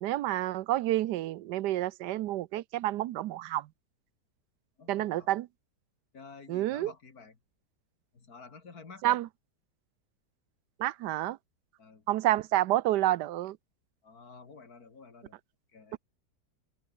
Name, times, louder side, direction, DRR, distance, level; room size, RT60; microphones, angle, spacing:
voice 1, 0.0-3.7 4.9-5.5 6.5-6.9 9.0-9.3 10.8-11.4 12.1-13.6 15.9-16.0, right 14 dB, 85° right, 1.2 m, -29 dB
voice 2, 4.8-5.3 6.1-7.4 8.1-9.2 11.8-12.0 14.0-15.3 15.7-16.0, left 4 dB, 60° left, 3.1 m, -50 dB
open air
omnidirectional pair, 1.8 m